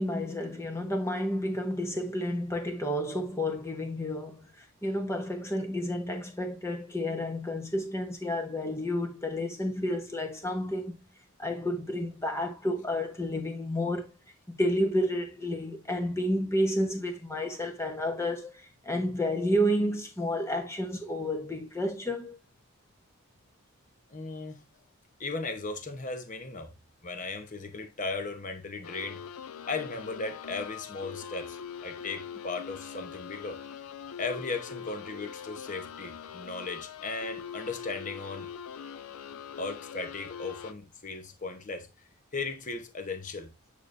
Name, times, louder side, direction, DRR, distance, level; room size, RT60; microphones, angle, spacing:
voice 1, 0.0-11.0 11.4-14.1 14.5-18.5 18.8-22.3, equal, 10° left, 1.1 m, -30 dB
voice 2, 24.1-24.6 25.2-26.7 27.0-29.2 29.7-33.6 34.2-38.5 39.6-41.9 42.3-43.5, left 3 dB, 35° left, 0.9 m, -36 dB
sound 1, 28.8-40.7, left 8 dB, 75° left, 0.5 m, -43 dB
8.9 x 5.1 x 2.6 m
head